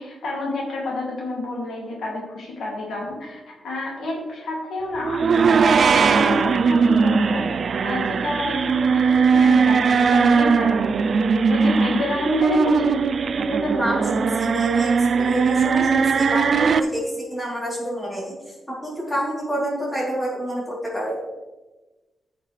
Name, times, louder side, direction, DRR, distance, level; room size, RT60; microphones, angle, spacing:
voice 1, 0.0-13.0, left 2 dB, 80° left, -3 dB, 2.5 m, -29 dB
sound 1, 5.0-16.8, right 5 dB, 50° right, 0.4 m, -19 dB
voice 2, 13.5-18.4 18.8-21.2, equal, 10° left, -6 dB, 3.4 m, -28 dB
14.5 x 5.8 x 3.3 m, 1.1 s
wide cardioid pair, 150°, 0 cm